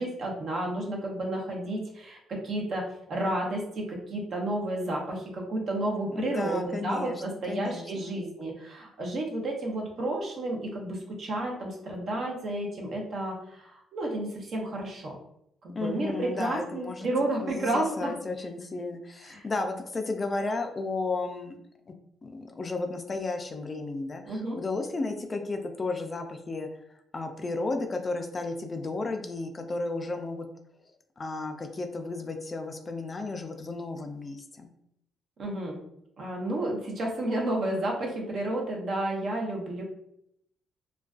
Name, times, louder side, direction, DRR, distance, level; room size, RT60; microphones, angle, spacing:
voice 1, 0.0-15.1 15.6-18.1 19.3-19.4 24.3-24.6 35.4-35.8 36.2-39.8, right 1 dB, 55° right, 0 dB, 0.6 m, -31 dB
voice 2, 6.1-8.3 15.7-17.1 17.4-21.6 21.9-22.0 22.2-26.7 27.1-30.5 31.2-34.7, left 3 dB, 30° left, 5 dB, 0.3 m, -33 dB
2.4 x 2.2 x 2.3 m, 0.76 s
cardioid pair, 90°, 0 cm